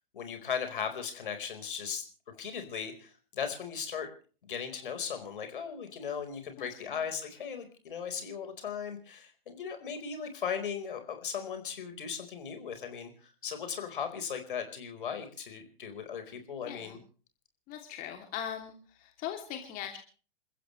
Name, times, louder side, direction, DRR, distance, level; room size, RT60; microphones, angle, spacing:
voice 1, 0.1-4.1 4.5-17.0, left 7 dB, 60° left, 7 dB, 4.7 m, -37 dB
voice 2, 6.6-7.0 16.6-17.0 17.7-20.0, left 10 dB, 30° left, 3 dB, 3.0 m, -40 dB
29.0 x 15.0 x 3.3 m, 0.40 s
figure-of-eight pair, 110°, 29 cm